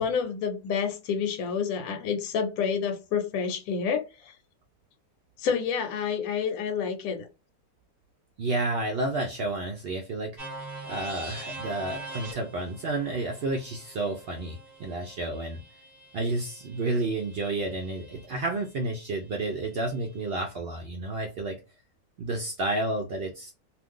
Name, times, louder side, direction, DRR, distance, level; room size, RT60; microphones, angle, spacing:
voice 1, 0.0-4.3 5.4-7.3, left 6 dB, 75° left, 1.1 m, -29 dB
voice 2, 8.4-10.4 10.8-15.6 16.1-21.6 22.2-23.5, right 2 dB, 70° right, 0.5 m, -31 dB
sound 1, 10.4-18.3, right 2 dB, 15° right, 1.0 m, -43 dB
2.5 x 2.4 x 3.5 m
omnidirectional pair, 1.6 m